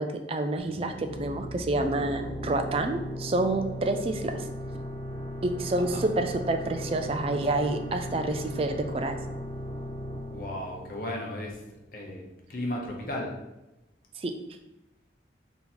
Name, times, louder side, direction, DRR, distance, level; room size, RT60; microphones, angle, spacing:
voice 1, 0.0-4.5 5.4-9.2 14.2-14.3, right 2 dB, 30° right, 6 dB, 0.3 m, -28 dB
sound 1, 0.6-12.0, equal, 25° left, 0.6 m, -37 dB
voice 2, 10.3-11.6 11.9-12.2 12.5-13.3, left 1 dB, 50° left, -1 dB, 0.8 m, -35 dB
3.7 x 2.9 x 4.2 m, 0.97 s
head